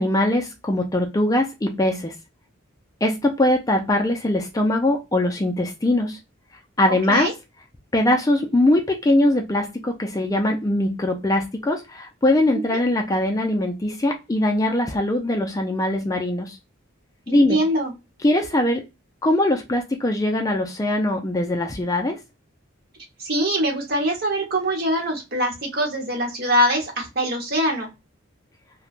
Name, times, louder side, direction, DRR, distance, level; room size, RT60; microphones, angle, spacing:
voice 1, 0.0-2.1 3.0-6.2 6.8-7.3 7.9-16.6 17.3-17.6 18.2-18.8 19.2-22.2, left 1 dB, 15° left, 3 dB, 0.3 m, -21 dB
voice 2, 17.3-17.9 23.2-27.9, equal, 50° right, 0 dB, 1.0 m, -23 dB
3.1 x 2.2 x 2.4 m, 0.24 s
head